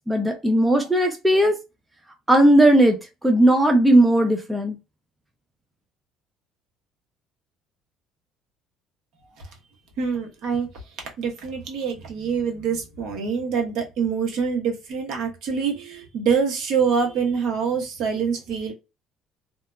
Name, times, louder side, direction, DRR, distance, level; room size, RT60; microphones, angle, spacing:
voice 1, 0.1-1.5 2.3-4.7, right 1 dB, 5° right, 0.3 m, -17 dB
voice 2, 10.0-10.7 11.2-18.7, right 6 dB, 60° right, 1.0 m, -25 dB
2.7 x 2.2 x 2.2 m
cardioid pair, 165°, 0 cm